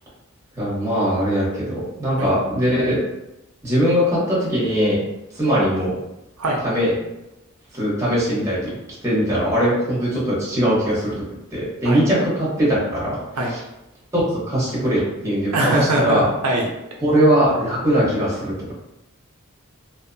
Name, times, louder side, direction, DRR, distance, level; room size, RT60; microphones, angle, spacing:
voice 1, 0.5-3.0 3.6-5.0 5.3-5.9 6.6-6.9 7.7-8.7 9.0-11.1 11.5-13.2 13.5-13.6 14.1-16.3 17.0-18.7, equal, 15° right, -8 dB, 0.9 m, -20 dB
voice 2, 15.5-16.6, right 1 dB, 80° right, -1 dB, 0.5 m, -21 dB
2.6 x 2.0 x 2.5 m, 0.91 s
head